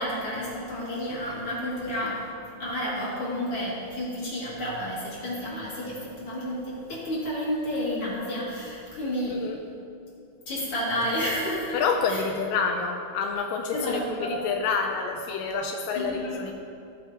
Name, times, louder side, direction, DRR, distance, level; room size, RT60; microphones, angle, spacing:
voice 1, 0.0-2.3 2.6-9.4 10.5-11.8 12.1-12.2 13.7-14.4 15.9-16.4, equal, 40° left, -7 dB, 3.1 m, -31 dB
voice 2, 11.7-16.5, left 5 dB, 85° left, 3 dB, 2.2 m, -28 dB
15.5 x 9.0 x 2.9 m, 2.5 s
omnidirectional pair, 4.0 m